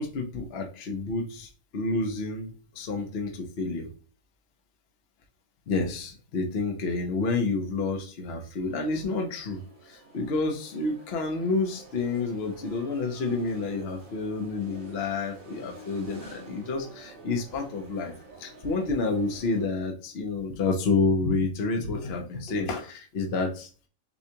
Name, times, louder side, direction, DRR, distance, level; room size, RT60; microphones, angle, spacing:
voice 1, 0.0-3.9 5.7-18.1 18.4-23.7, left 3 dB, 55° left, 2 dB, 1.0 m, -29 dB
sound 1, 8.6-19.7, right 2 dB, 85° right, 1.7 m, -49 dB
6.8 x 2.3 x 2.8 m, 0.38 s
omnidirectional pair, 1.4 m